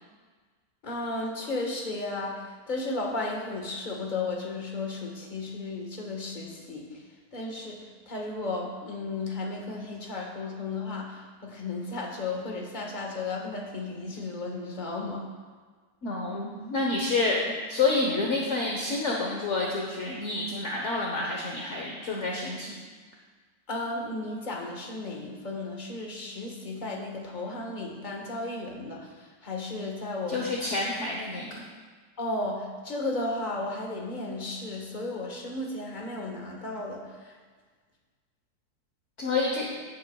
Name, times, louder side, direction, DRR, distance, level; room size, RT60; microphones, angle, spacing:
voice 1, 0.8-7.0 7.3-7.8 8.1-15.3 23.7-30.5 32.2-37.3, left 2 dB, 30° left, -1 dB, 1.4 m, -34 dB
voice 2, 16.0-22.7 30.3-31.6 39.2-39.7, left 3 dB, 50° left, -2 dB, 1.2 m, -28 dB
15.5 x 8.3 x 2.3 m, 1.5 s
omnidirectional pair, 1.8 m